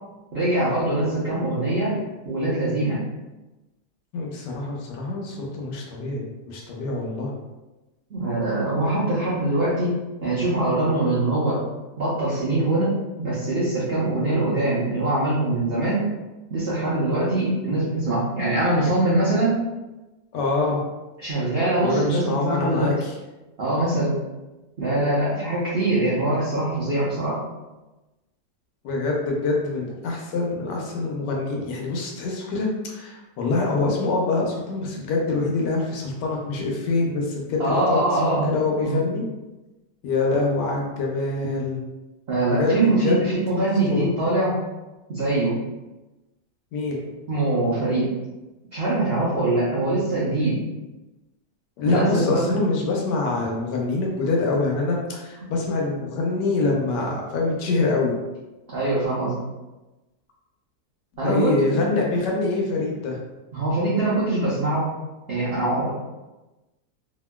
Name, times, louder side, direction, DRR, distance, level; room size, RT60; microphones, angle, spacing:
voice 1, 0.3-2.0 2.2-3.0 8.1-11.6 12.0-12.9 13.2-16.1 16.5-19.6 21.2-23.0 23.6-24.1 24.8-27.4 37.6-38.5 38.8-39.0 42.3-44.6 45.1-45.5 47.3-48.1 48.7-50.6 51.8-52.5 58.7-59.3 61.2-61.8 63.5-64.9 65.3-65.9, right 2 dB, 70° right, -9 dB, 0.5 m, -23 dB
voice 2, 4.1-7.3 20.3-20.8 21.8-23.1 28.8-39.2 40.0-41.8 42.5-43.2 43.9-44.1 46.7-47.0 51.8-58.2 61.2-63.2, left 3 dB, 75° left, -1 dB, 1.2 m, -25 dB
2.8 x 2.7 x 2.2 m, 1.1 s
omnidirectional pair, 1.9 m